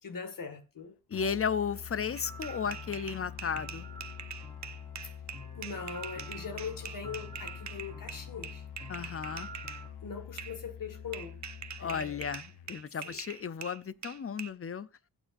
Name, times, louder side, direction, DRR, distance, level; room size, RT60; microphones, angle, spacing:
voice 1, 0.0-0.9 5.6-8.7 10.0-11.4 11.8-12.3 13.0-13.2, left 5 dB, 55° left, 2.0 m, -41 dB
Musical instrument, 1.1-12.8, left 9 dB, 75° left, 0.7 m, -46 dB
voice 2, 1.1-3.9 8.9-9.5 11.8-14.9, left 6 dB, 35° left, 0.6 m, -34 dB
sound 1, 2.0-9.9, right 2 dB, 15° left, 2.4 m, -50 dB
sound 2, 2.1-9.8 10.4-10.6 11.1-14.5, right 7 dB, 45° right, 0.8 m, -44 dB
16.0 x 8.9 x 2.6 m
wide cardioid pair, 145°, 39 cm